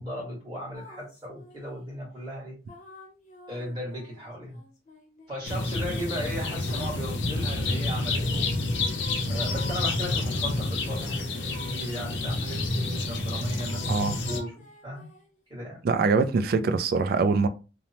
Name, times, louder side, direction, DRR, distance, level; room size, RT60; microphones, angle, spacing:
voice 1, 0.0-2.6 3.5-4.6 5.3-8.5 9.3-15.1 15.5-15.8, equal, 25° right, 1.5 m, -37 dB
sound 1, 0.7-1.9 2.7-7.0 8.1-9.8 10.3-12.7 13.6-15.4, left 1 dB, 40° left, 0.7 m, -48 dB
sound 2, 5.4-14.4, left 2 dB, 85° left, 0.6 m, -29 dB
voice 2, 13.9-14.2 15.8-17.5, right 4 dB, 55° right, 0.3 m, -23 dB
3.0 x 2.0 x 2.7 m
head